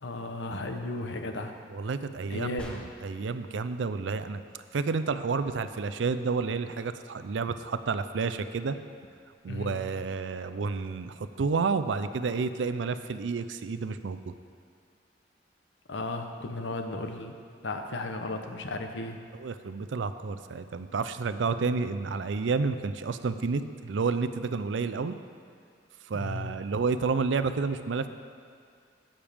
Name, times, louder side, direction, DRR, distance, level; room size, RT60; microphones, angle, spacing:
voice 1, 0.0-1.5 2.3-2.7 9.5-9.8 15.9-17.3 17.6-19.2 26.1-26.5, left 2 dB, 85° left, 5 dB, 0.8 m, -35 dB
voice 2, 1.7-4.4 4.7-8.8 9.4-14.3 19.3-25.2 26.1-28.1, right 4 dB, 85° right, 11 dB, 0.5 m, -30 dB
sound 1, 2.6-3.3, equal, 5° left, 1.0 m, -44 dB
12.0 x 8.8 x 3.5 m, 2.2 s
head